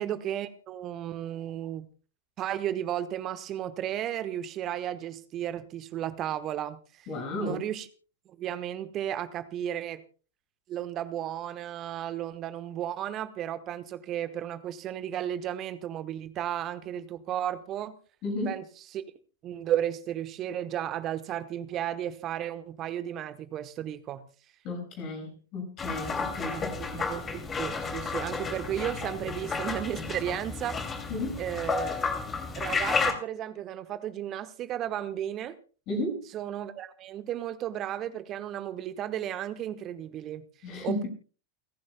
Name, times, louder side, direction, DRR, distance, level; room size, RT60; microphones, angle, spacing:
voice 1, 0.0-1.9 2.4-7.1 7.4-7.9 8.3-10.0 10.7-18.0 18.4-18.6 18.9-19.0 19.4-24.3 26.5-26.7 26.9-30.8 31.4-32.0 32.5-35.6 36.3-41.1, right 11 dB, 35° right, 1.2 m, -34 dB
voice 2, 7.1-7.6 18.2-18.5 24.6-26.7 31.1-31.4 35.9-36.2 40.6-41.1, left 1 dB, 40° left, 6.3 m, -33 dB
sound 1, 25.8-33.1, left 4 dB, 20° left, 2.6 m, -32 dB
29.5 x 11.0 x 2.2 m
figure-of-eight pair, 90°, 0 cm